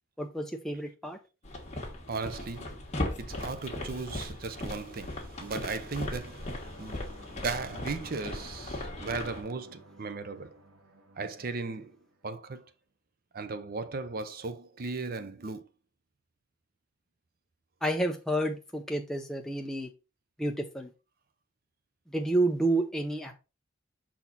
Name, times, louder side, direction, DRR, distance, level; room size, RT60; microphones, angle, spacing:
voice 1, 0.2-1.2 17.8-19.9 20.4-20.9 22.1-23.3, right 1 dB, ahead, 0.5 m, -30 dB
sound 1, 1.4-9.4, left 1 dB, 35° left, 1.5 m, -38 dB
voice 2, 2.1-2.9 3.2-7.1 7.4-10.6 11.2-12.0 12.2-12.7 13.3-15.7, right 4 dB, 45° right, 0.6 m, -37 dB
sound 2, 3.8-12.5, right 2 dB, 80° right, 1.6 m, -56 dB
5.8 x 4.2 x 4.0 m
head